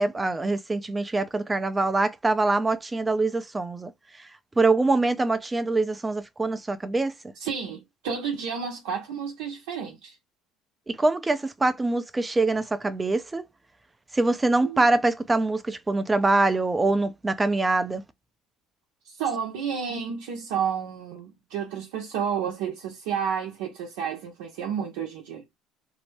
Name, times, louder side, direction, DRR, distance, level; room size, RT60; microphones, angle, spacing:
voice 1, 0.0-3.9 4.6-7.1 10.9-13.4 14.1-18.0, right 2 dB, 15° right, 0.4 m, -24 dB
voice 2, 7.4-10.2 14.6-14.8 19.0-25.4, right 7 dB, 85° right, 0.7 m, -31 dB
2.6 x 2.1 x 3.3 m
supercardioid pair, 90°, 0 cm